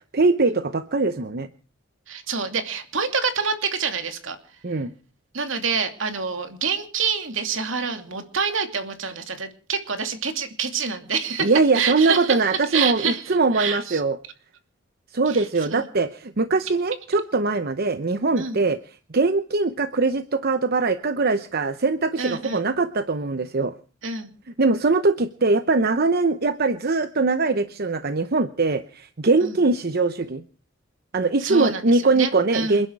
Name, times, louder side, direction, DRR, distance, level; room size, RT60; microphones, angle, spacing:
voice 1, 0.1-1.5 4.6-4.9 11.4-14.2 15.1-18.8 19.1-23.7 24.6-30.4 31.1-32.9, right 3 dB, 50° right, 11 dB, 0.8 m, -22 dB
voice 2, 2.1-4.4 5.3-14.0 15.3-15.4 15.7-15.8 18.4-18.6 22.2-22.7 24.0-24.3 29.4-29.6 31.4-32.8, right 5 dB, 75° right, 7 dB, 2.8 m, -27 dB
28.0 x 11.0 x 4.7 m, 0.39 s
head